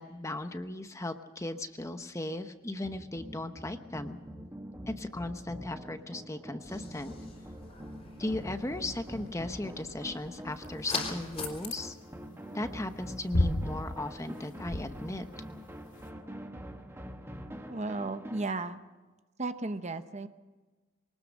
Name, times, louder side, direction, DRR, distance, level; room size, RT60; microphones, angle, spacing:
voice 1, 0.0-4.2 5.0-7.1 8.2-12.0 12.5-15.4, left 2 dB, 15° left, 8 dB, 0.9 m, -37 dB
sound 1, 2.8-18.5, equal, 10° right, 1.4 m, -45 dB
sound 2, 6.6-11.7, left 4 dB, 30° left, 3.8 m, -42 dB
sound 3, 10.6-16.1, left 1 dB, 55° left, 2.5 m, -34 dB
voice 2, 17.7-18.8 19.4-20.3, right 2 dB, 30° right, 10 dB, 0.9 m, -34 dB
24.0 x 19.0 x 6.4 m, 1.3 s
head